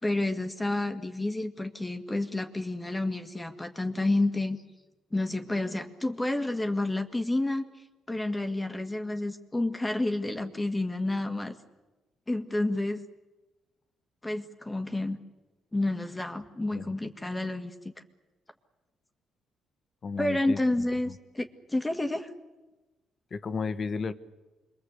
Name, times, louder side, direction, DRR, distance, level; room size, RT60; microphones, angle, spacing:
voice 1, 0.0-4.6 5.1-7.7 8.1-11.5 12.3-13.0 14.2-15.2 15.7-17.7 20.2-22.3, left 2 dB, 15° left, 6 dB, 1.8 m, -30 dB
voice 2, 20.0-21.1 23.3-24.1, left 5 dB, 45° left, 11 dB, 1.5 m, -34 dB
27.0 x 22.0 x 8.2 m, 1.2 s
cardioid pair, 90°, 0 cm